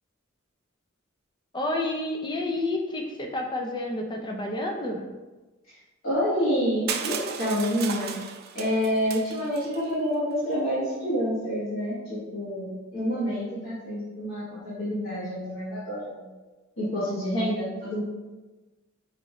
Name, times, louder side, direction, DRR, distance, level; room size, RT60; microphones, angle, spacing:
voice 1, 1.5-5.0, left 2 dB, 20° left, 1 dB, 0.5 m, -29 dB
voice 2, 6.0-8.1 8.5-16.2 16.8-18.0, equal, 75° left, -12 dB, 1.4 m, -28 dB
Crushing, 6.9-9.8, right 7 dB, 50° right, 0.3 m, -35 dB
5.5 x 2.6 x 3.1 m, 1.2 s
head